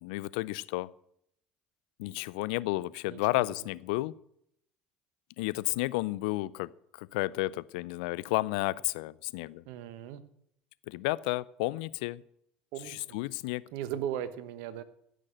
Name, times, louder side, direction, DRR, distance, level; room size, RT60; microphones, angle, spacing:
voice 1, 0.0-0.9 2.0-4.1 5.4-6.7 7.0-9.6 10.9-12.2 12.8-13.6, left 20 dB, 75° left, 20 dB, 0.4 m, -32 dB
voice 2, 9.7-10.2 12.7-13.2 13.7-14.8, right 10 dB, 70° right, 13 dB, 1.1 m, -37 dB
15.5 x 6.5 x 7.7 m, 0.73 s
hypercardioid pair, 70°, 5 cm